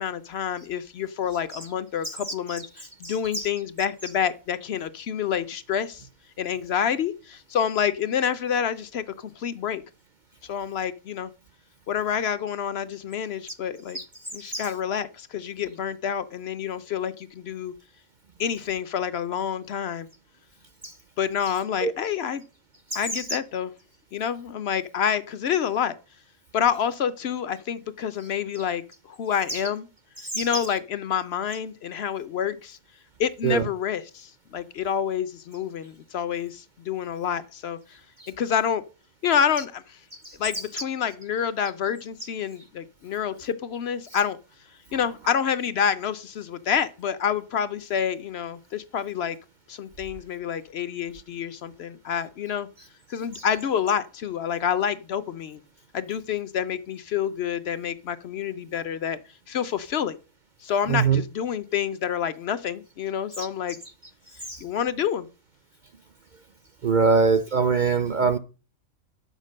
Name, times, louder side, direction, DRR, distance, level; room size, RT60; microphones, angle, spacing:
voice 1, 0.0-6.0 6.4-9.8 10.4-11.3 11.9-14.0 14.3-17.7 18.4-20.1 21.2-22.4 22.9-23.7 24.1-26.0 26.5-29.9 30.4-32.8 33.2-38.0 38.4-38.8 39.2-40.0 40.4-44.4 44.9-49.4 49.7-52.7 53.1-55.6 55.9-59.2 59.5-60.2 60.6-63.8 64.6-65.3, left 8 dB, 60° left, 0.8 m, -28 dB
voice 2, 3.0-3.5 13.9-14.0 14.4-14.7 21.8-21.9 22.9-23.2 29.5-29.6 30.2-30.6 33.4-33.6 40.2-40.4 60.9-61.2 63.4-63.5 64.5-64.6 66.8-68.4, right 5 dB, 50° right, 0.6 m, -23 dB
8.1 x 6.6 x 6.3 m
omnidirectional pair, 1.3 m